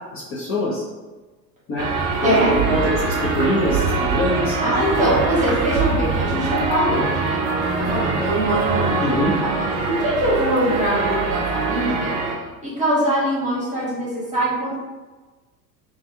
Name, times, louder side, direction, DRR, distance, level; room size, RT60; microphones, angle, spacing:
voice 1, 0.1-0.8 1.7-1.9 2.2-2.4 2.7-4.6 9.0-9.3, left 1 dB, 25° left, -8 dB, 0.7 m, -23 dB
sound 1, 1.8-12.3, right 4 dB, 30° right, 0.4 m, -23 dB
voice 2, 2.2-2.5 4.6-12.1 12.6-14.8, right 1 dB, 15° right, -7 dB, 1.1 m, -23 dB
2.4 x 2.4 x 2.8 m, 1.2 s
figure-of-eight pair, 80°, 48 cm